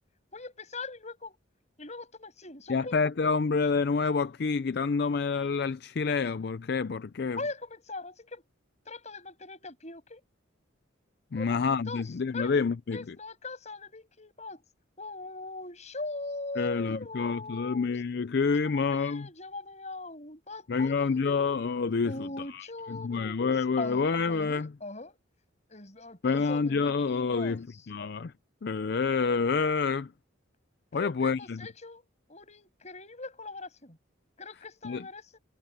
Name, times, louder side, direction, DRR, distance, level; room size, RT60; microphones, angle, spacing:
voice 1, 0.3-1.4 1.8-3.0 7.4-8.4 8.9-10.2 11.3-12.5 12.9-14.6 15.0-17.9 18.7-21.5 22.0-25.2 25.7-27.6 30.9-34.0 34.4-35.4, left 3 dB, 35° left, 7.7 m, -41 dB
voice 2, 2.7-7.4 11.3-13.0 16.6-19.3 20.7-24.7 26.2-28.3 28.6-30.1 30.9-31.6 34.8-35.0, left 4 dB, 55° left, 0.4 m, -28 dB
head